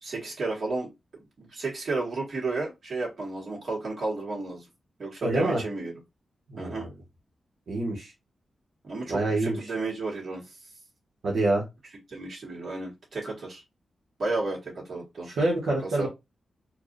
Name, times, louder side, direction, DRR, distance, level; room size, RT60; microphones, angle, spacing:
voice 1, 0.0-4.6 5.0-5.9 6.6-6.9 8.8-10.6 12.1-13.6 14.2-15.3 15.8-16.1, right 3 dB, 50° right, -3 dB, 2.0 m, -33 dB
voice 2, 5.2-5.6 6.5-6.9 7.7-8.1 9.1-9.6 11.2-11.6 15.3-16.1, right 2 dB, 75° right, -3 dB, 1.4 m, -26 dB
4.6 x 2.6 x 2.6 m, 0.21 s
wide cardioid pair, 140°, 0 cm